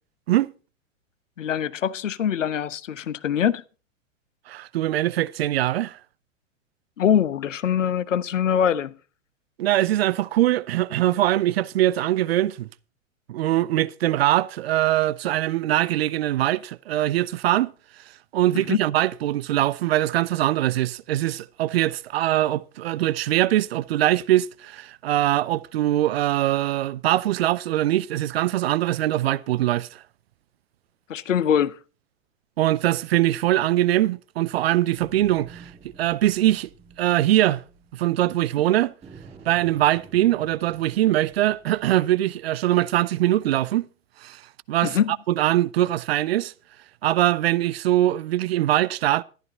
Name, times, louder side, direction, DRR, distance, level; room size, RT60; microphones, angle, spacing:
voice 1, 1.4-3.6 7.0-9.0 18.5-18.8 31.1-31.8 44.8-45.2, left 8 dB, 70° left, 1.0 m, -23 dB
voice 2, 4.5-6.0 9.6-12.7 13.3-17.7 18.3-30.0 32.6-35.7 36.0-36.7 37.0-37.6 37.9-38.9 39.5-43.9 44.2-44.4 44.7-46.5 47.0-49.2, right 14 dB, 50° right, 0.6 m, -22 dB
sound 1, 34.9-38.5 39.0-42.4, right 5 dB, 15° right, 4.0 m, -48 dB
13.5 x 12.0 x 3.9 m
figure-of-eight pair, 100°, 40 cm